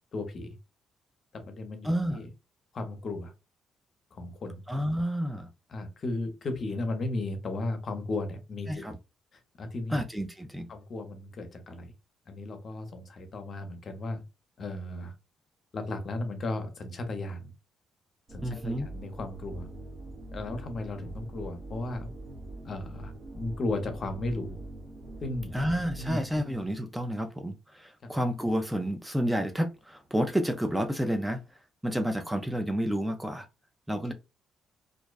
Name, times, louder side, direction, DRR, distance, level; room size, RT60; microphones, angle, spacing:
voice 1, 0.1-0.6 1.3-2.3 2.7-3.3 4.1-4.6 5.7-9.0 9.6-10.0 10.7-11.9 12.3-14.2 14.6-15.1 15.7-17.5 18.3-19.7 20.3-22.1 22.6-24.6 25.2-25.6 26.0-26.2 28.0-28.1, left 2 dB, 50° left, 0.6 m, -35 dB
voice 2, 1.8-2.2 4.7-5.5 8.7-8.9 9.9-10.7 18.4-18.9 25.5-31.4 31.8-33.5 33.9-34.1, equal, 5° right, 0.3 m, -30 dB
sound 1, 18.3-26.6, right 1 dB, 40° right, 0.7 m, -43 dB
2.5 x 2.1 x 2.3 m
cardioid pair, 90°, 0 cm